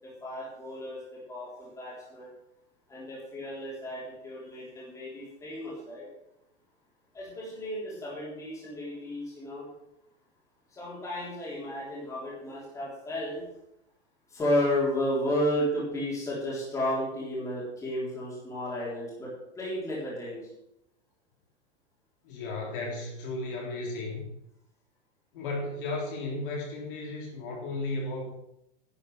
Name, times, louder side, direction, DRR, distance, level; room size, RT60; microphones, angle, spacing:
voice 1, 0.0-2.3 2.9-6.1 7.1-9.7 10.7-13.4 14.3-20.5, left 1 dB, 10° left, -7 dB, 3.7 m, -33 dB
voice 2, 22.2-24.2 25.3-28.3, left 2 dB, 50° left, -2 dB, 3.5 m, -34 dB
10.5 x 8.6 x 6.5 m, 0.82 s
supercardioid pair, 175°, 35 cm